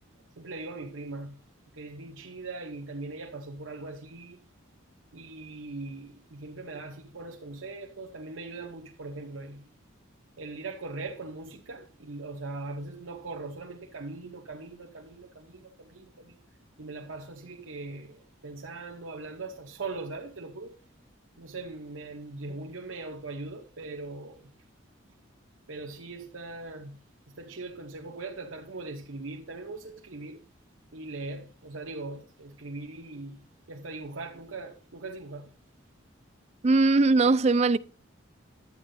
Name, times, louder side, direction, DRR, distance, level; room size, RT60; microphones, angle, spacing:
voice 1, 0.4-1.4 1.7-4.4 5.1-9.7 10.4-16.4 16.8-20.8 21.4-24.5 25.7-27.0 27.3-30.4 30.9-35.5, right 3 dB, 75° right, 0.8 m, -40 dB
voice 2, 36.6-37.8, right 3 dB, 30° right, 0.4 m, -20 dB
11.0 x 8.6 x 2.6 m
head